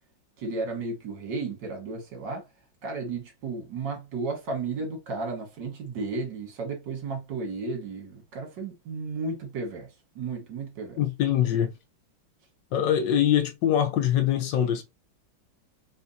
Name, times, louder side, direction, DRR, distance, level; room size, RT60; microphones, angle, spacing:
voice 1, 0.4-2.5 2.8-11.0, right 3 dB, 65° right, 2.2 m, -33 dB
voice 2, 11.0-11.7 12.7-14.8, left 10 dB, 70° left, 1.3 m, -23 dB
4.4 x 4.0 x 2.8 m
omnidirectional pair, 2.1 m